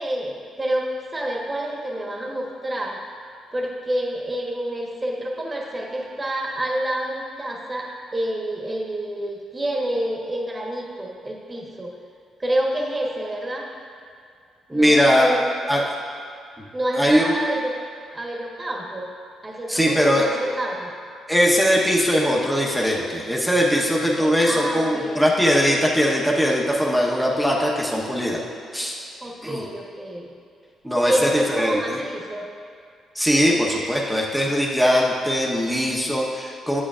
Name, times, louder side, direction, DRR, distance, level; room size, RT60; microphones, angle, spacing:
voice 1, 0.0-3.0 3.5-11.9 12.4-13.7 14.7-15.5 16.7-17.8 18.1-19.1 19.4-20.9 24.2-25.2 29.2-30.3 31.0-32.5 33.5-33.6, right 1 dB, 20° right, -1 dB, 1.2 m, -28 dB
voice 2, 14.7-15.3 15.7-15.8 17.0-17.4 19.7-20.3 21.3-28.4 28.7-29.0 29.4-29.6 30.8-31.8 33.1-36.8, equal, ahead, -3 dB, 1.0 m, -20 dB
8.6 x 8.2 x 2.4 m, 2.3 s
cardioid pair, 90°, 0 cm